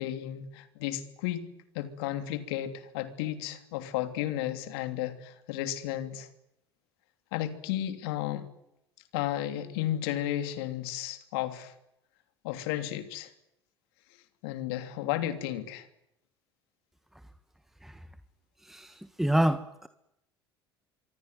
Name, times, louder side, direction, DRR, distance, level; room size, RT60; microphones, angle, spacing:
voice 1, 0.0-1.5 1.7-6.3 7.3-8.5 9.1-11.7 12.4-13.3 14.4-15.9, left 12 dB, 65° left, 9 dB, 3.1 m, -33 dB
voice 2, 19.2-19.9, right 1 dB, ahead, 11 dB, 1.4 m, -26 dB
26.5 x 23.5 x 9.5 m, 0.84 s
figure-of-eight pair, 65°, 14 cm